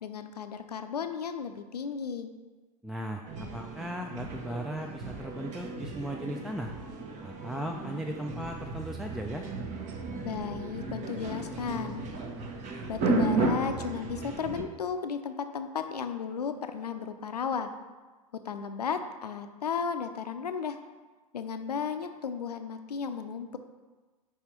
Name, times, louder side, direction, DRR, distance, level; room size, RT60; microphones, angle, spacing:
voice 1, 0.0-2.3 10.2-12.0 12.9-17.7 18.4-20.8 21.3-23.6, left 6 dB, 85° left, 8 dB, 0.5 m, -34 dB
voice 2, 2.8-6.7 7.2-9.5, right 1 dB, ahead, 1 dB, 0.4 m, -37 dB
sound 1, 3.3-14.6, right 3 dB, 35° right, 0.9 m, -34 dB
5.5 x 4.9 x 4.4 m, 1.3 s
figure-of-eight pair, 90°, 20 cm